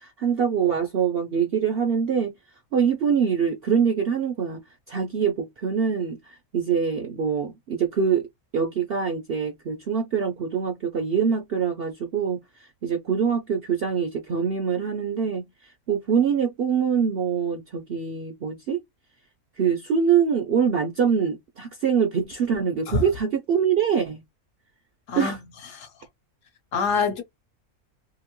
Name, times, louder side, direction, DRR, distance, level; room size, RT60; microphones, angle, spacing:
voice 1, 0.0-2.3 2.7-4.6 4.9-8.2 8.5-12.4 12.8-18.8 19.6-24.2 25.2-25.4, right 7 dB, 65° right, 0.6 m, -24 dB
voice 2, 25.1-25.4 25.7-25.9 26.7-27.2, left 4 dB, 65° left, 1.2 m, -25 dB
2.8 x 2.6 x 2.9 m
omnidirectional pair, 1.5 m